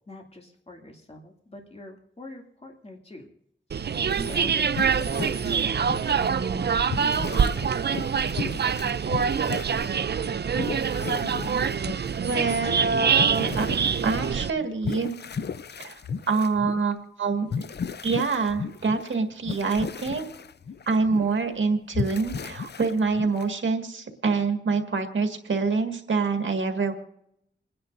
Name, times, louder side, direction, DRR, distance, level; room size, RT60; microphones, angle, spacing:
voice 1, 0.0-3.3 3.7-8.9, left 1 dB, 30° left, 1 dB, 2.5 m, -44 dB
sound 1, 3.7-14.5, right 6 dB, 60° right, 0.5 m, -25 dB
sound 2, 4.1-6.3 6.8-9.9 10.2-12.2 12.5-12.7 13.1-16.9 17.5-19.2 19.4-21.5 21.9-23.4, left 6 dB, 60° left, 0.5 m, -35 dB
voice 2, 12.2-13.7 14.0-15.1 15.8-16.0 16.3-17.7 18.0-20.3 20.9-26.9, right 4 dB, 90° right, 5 dB, 1.8 m, -26 dB
29.0 x 10.5 x 2.6 m, 0.76 s
wide cardioid pair, 75°, 20 cm